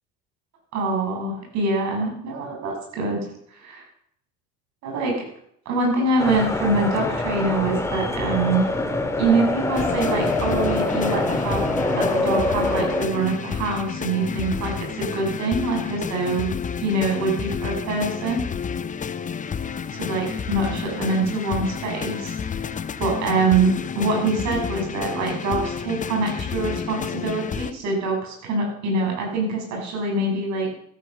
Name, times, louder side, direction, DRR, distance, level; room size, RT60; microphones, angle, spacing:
voice 1, 0.7-3.8 4.8-5.2 5.7-8.6 9.2-11.6 11.9-18.4 19.9-22.3 23.0-30.7, right 3 dB, 65° right, 0 dB, 7.8 m, -24 dB
sound 1, 6.2-13.1, left 2 dB, 10° left, 2.2 m, -25 dB
sound 2, 9.7-27.7, left 7 dB, 25° left, 0.8 m, -30 dB
14.0 x 13.5 x 6.8 m, 0.71 s
cardioid pair, 110°, 29 cm